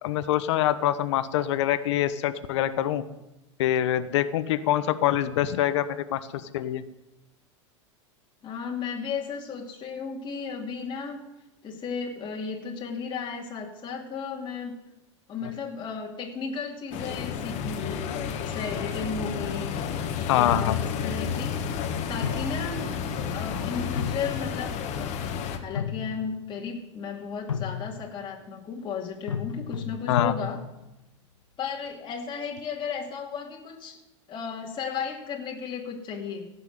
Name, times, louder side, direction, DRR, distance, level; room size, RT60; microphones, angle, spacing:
voice 1, 0.0-3.0 3.6-6.8 20.3-20.8 30.1-30.3, left 12 dB, 65° left, 13 dB, 1.1 m, -25 dB
voice 2, 8.4-11.2 11.6-14.7 15.3-19.7 20.4-21.6 22.1-22.9 23.3-25.2 25.5-30.6 31.6-34.0 34.3-36.5, left 6 dB, 30° left, -1 dB, 2.5 m, -34 dB
sound 1, 16.9-25.6, left 7 dB, 45° left, 1.8 m, -31 dB
sound 2, 20.5-21.2 22.2-23.4 23.7-24.9 25.6-26.4 27.5-28.2 29.3-30.9, left 7 dB, 90° left, 0.9 m, -34 dB
16.5 x 6.3 x 9.4 m, 0.96 s
hypercardioid pair, 90°, 16 cm